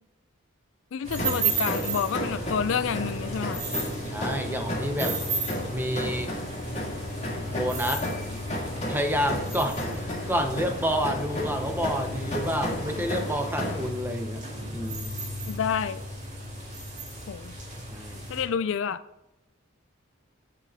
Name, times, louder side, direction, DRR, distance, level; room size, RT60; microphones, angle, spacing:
voice 1, 0.9-3.6 15.5-16.0 17.3-17.5 18.3-19.0, left 7 dB, 65° left, 13 dB, 0.4 m, -29 dB
sound 1, 1.0-18.4, right 2 dB, 35° right, 2.3 m, -34 dB
sound 2, 1.2-13.9, equal, 30° left, 1.7 m, -34 dB
voice 2, 4.1-5.2 5.7-6.3 7.5-8.1 8.5-14.4 14.7-15.2 17.9-18.3, equal, 10° right, 6 dB, 0.7 m, -29 dB
7.7 x 7.3 x 3.5 m, 0.93 s
head